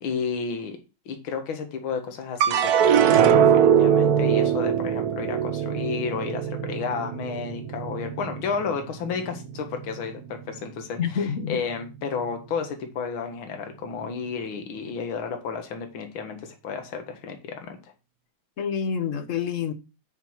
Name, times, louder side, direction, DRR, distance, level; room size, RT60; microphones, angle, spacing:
voice 1, 0.0-0.8 1.1-17.8, left 5 dB, 80° left, 2.1 m, -32 dB
sound 1, 2.4-8.8 9.3-10.0, right 8 dB, 60° right, 1.0 m, -21 dB
voice 2, 11.0-11.6 18.6-19.7, left 7 dB, 50° left, 1.0 m, -27 dB
8.1 x 5.5 x 4.5 m
omnidirectional pair, 2.2 m